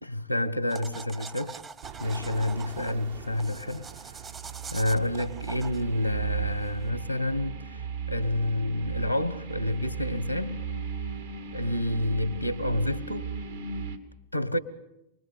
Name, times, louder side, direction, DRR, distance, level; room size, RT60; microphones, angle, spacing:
voice 1, 0.0-1.6 2.0-3.9 4.7-10.6 11.5-13.4 14.3-14.6, left 1 dB, 90° left, 1.1 m, -29 dB
sound 1, 0.7-6.9, right 5 dB, 20° right, 0.9 m, -44 dB
sound 2, 1.8-6.5, right 9 dB, 50° right, 0.9 m, -46 dB
sound 3, 3.4-14.0, right 6 dB, 70° right, 2.2 m, -36 dB
28.0 x 20.5 x 8.4 m
figure-of-eight pair, 90°, 0 cm